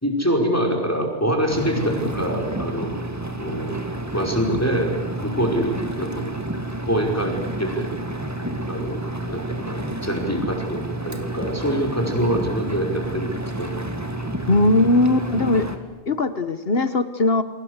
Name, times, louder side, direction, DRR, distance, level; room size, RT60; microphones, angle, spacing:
voice 1, 0.0-2.9 3.4-3.7 4.1-4.9 5.2-6.3 6.9-7.9 8.7-9.0 9.3-13.3 13.6-13.7, equal, 15° left, 2 dB, 5.2 m, -25 dB
Engine, 1.5-15.8, right 1 dB, 15° right, 2.2 m, -30 dB
voice 2, 14.5-15.6 16.1-17.4, left 2 dB, 55° left, 11 dB, 1.5 m, -19 dB
30.0 x 23.0 x 8.1 m, 1.1 s
omnidirectional pair, 1.2 m